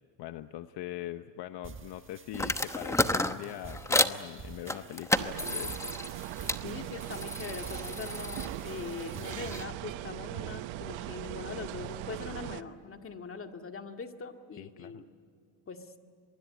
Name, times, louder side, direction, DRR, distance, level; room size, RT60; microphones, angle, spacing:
voice 1, 0.2-5.8 14.6-15.0, left 13 dB, 60° left, 10 dB, 0.9 m, -42 dB
sound 1, 1.6-9.6, right 5 dB, 25° right, 1.4 m, -49 dB
sound 2, 2.3-4.2 4.7-6.6 7.0-9.6, left 1 dB, 5° left, 0.9 m, -32 dB
sound 3, 5.1-12.6, right 15 dB, 75° right, 1.0 m, -40 dB
voice 2, 6.6-15.1 15.7-15.9, left 4 dB, 30° left, 5 dB, 2.1 m, -42 dB
24.5 x 22.5 x 9.6 m, 2.2 s
cardioid pair, 120°, 46 cm